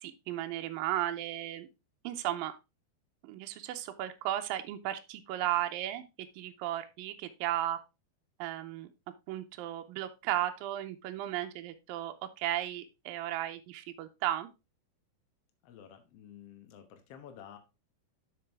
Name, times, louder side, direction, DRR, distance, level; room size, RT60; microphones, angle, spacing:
voice 1, 0.0-1.7 2.0-2.5 3.2-6.0 6.4-7.8 8.4-8.9 9.3-14.5, right 13 dB, 80° right, 7 dB, 2.2 m, -35 dB
voice 2, 15.6-17.6, left 9 dB, 85° left, 5 dB, 1.3 m, -51 dB
7.8 x 6.1 x 3.5 m, 0.26 s
omnidirectional pair, 4.5 m